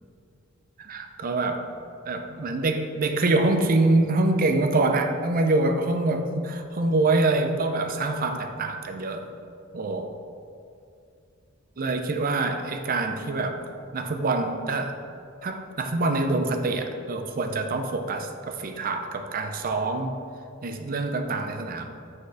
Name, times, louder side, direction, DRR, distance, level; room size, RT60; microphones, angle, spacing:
voice 1, 0.8-1.6 2.1-9.3 9.7-10.1 11.8-15.0 15.4-20.1 20.6-21.9, right 2 dB, 40° right, 6 dB, 0.5 m, -25 dB
8.1 x 4.3 x 4.8 m, 2.4 s
head